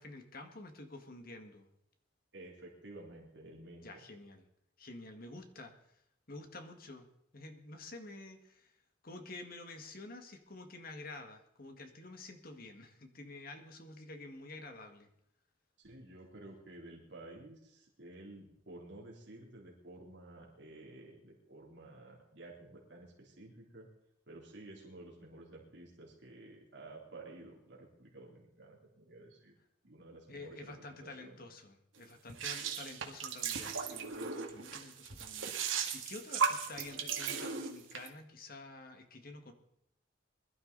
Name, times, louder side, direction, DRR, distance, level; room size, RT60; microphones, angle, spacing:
voice 1, 0.0-1.7 3.8-4.4 4.8-5.7 6.3-7.1 7.3-8.7 9.0-15.1 30.3-39.5, left 2 dB, 50° left, 6 dB, 1.8 m, -49 dB
voice 2, 2.3-4.1 15.8-23.9 24.3-29.5 29.8-31.4, right 2 dB, 60° right, -2 dB, 3.4 m, -52 dB
sound 1, 32.3-38.1, right 6 dB, 80° right, 2.0 m, -36 dB
21.5 x 12.0 x 4.0 m, 0.80 s
head